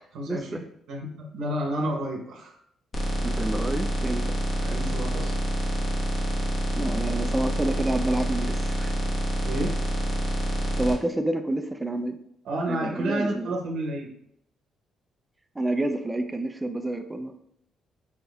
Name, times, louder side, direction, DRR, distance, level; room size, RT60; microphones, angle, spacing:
voice 1, 0.1-2.6 4.5-5.3 9.4-9.8 12.4-14.1, right 1 dB, 80° right, 0 dB, 0.8 m, -31 dB
sound 1, 2.9-10.9, right 1 dB, 35° left, 1.2 m, -27 dB
voice 2, 3.2-4.3 6.7-8.9 10.8-12.2 12.7-13.5 15.6-17.3, right 1 dB, 15° right, 8 dB, 0.5 m, -28 dB
4.4 x 4.0 x 2.3 m, 0.71 s
cardioid pair, 90°, 0 cm